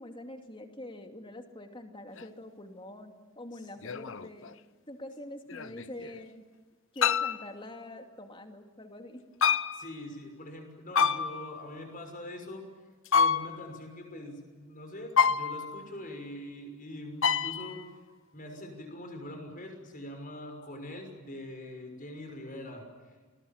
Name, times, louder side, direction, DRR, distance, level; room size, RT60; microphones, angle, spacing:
voice 1, 0.0-4.6 4.9-6.5 6.9-9.3, left 1 dB, 25° left, 5 dB, 2.5 m, -45 dB
sound 1, 2.2-2.3 3.8-4.5 5.5-6.2 7.0-7.5 9.4-9.9 10.9-11.6 13.1-13.8 15.2-15.9 17.2-17.8, left 6 dB, 60° left, 0.9 m, -27 dB
voice 2, 9.7-12.6 13.1-18.0 18.3-23.3, left 1 dB, 40° left, 4 dB, 6.2 m, -43 dB
29.0 x 21.5 x 8.8 m, 1.4 s
head